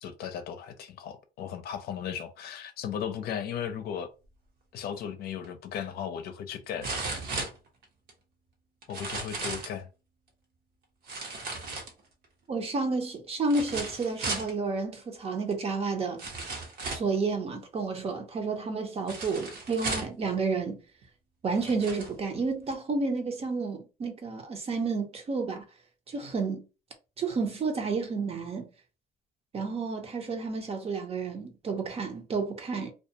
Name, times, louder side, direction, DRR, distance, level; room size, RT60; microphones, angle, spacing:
voice 1, 0.0-4.1 4.7-6.9 7.3-7.4 8.9-9.9, left 8 dB, 65° left, 0.6 m, -36 dB
sound 1, 5.4-5.5 6.8-8.1 8.8-9.8 11.1-12.2 13.5-14.5 15.5-15.6 16.2-17.2 19.1-20.2 21.0-21.1 21.5-22.1 22.7-22.8, right 3 dB, 65° right, 0.9 m, -35 dB
voice 2, 12.5-16.2 16.9-20.8 21.4-25.6 26.1-26.6 27.2-28.7 29.5-32.9, right 4 dB, 35° right, 0.7 m, -31 dB
2.3 x 2.3 x 2.7 m
cardioid pair, 110°, 17 cm